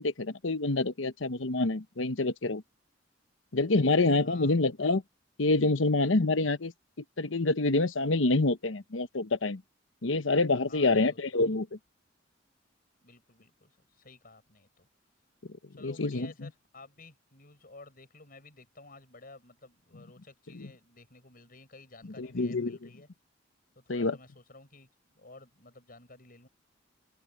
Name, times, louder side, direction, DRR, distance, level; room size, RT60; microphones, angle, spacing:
voice 1, 0.0-2.6 3.5-5.0 5.4-6.7 7.2-9.6 10.0-11.8 15.8-16.5 20.5-20.7 22.2-22.8 23.9-24.2, left 2 dB, 85° left, 1.1 m, -27 dB
voice 2, 4.2-4.6 10.7-11.2 13.0-14.9 15.7-23.1 23.7-26.5, left 3 dB, 50° left, 6.4 m, -53 dB
head